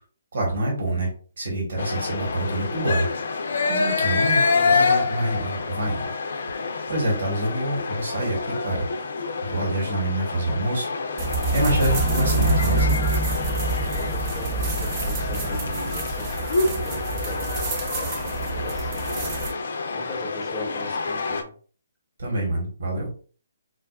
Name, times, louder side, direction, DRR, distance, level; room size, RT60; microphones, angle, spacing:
voice 1, 0.3-3.1 3.7-6.0 6.5-8.9 9.4-10.9 11.1-12.9 22.2-23.1, right 1 dB, 70° right, -1 dB, 1.5 m, -26 dB
sound 1, 1.8-21.4, left 4 dB, 65° left, 0.5 m, -27 dB
voice 2, 4.5-4.9 11.7-12.4 13.8-21.5, left 1 dB, 5° left, -2 dB, 1.0 m, -40 dB
sound 2, 11.2-19.5, right 3 dB, 30° right, 0.7 m, -26 dB
4.6 x 2.2 x 2.3 m, 0.41 s
figure-of-eight pair, 140°, 0 cm